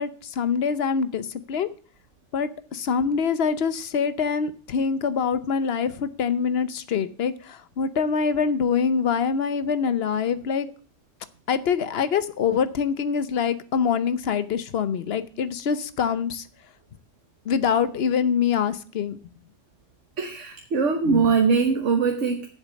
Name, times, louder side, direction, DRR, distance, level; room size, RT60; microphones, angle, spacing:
voice 1, 0.0-1.7 2.3-10.7 11.5-16.5 17.4-19.2, left 6 dB, 60° left, 14 dB, 1.0 m, -25 dB
voice 2, 20.2-22.5, right 5 dB, 80° right, 4 dB, 1.5 m, -22 dB
7.5 x 7.1 x 8.2 m, 0.42 s
omnidirectional pair, 1.2 m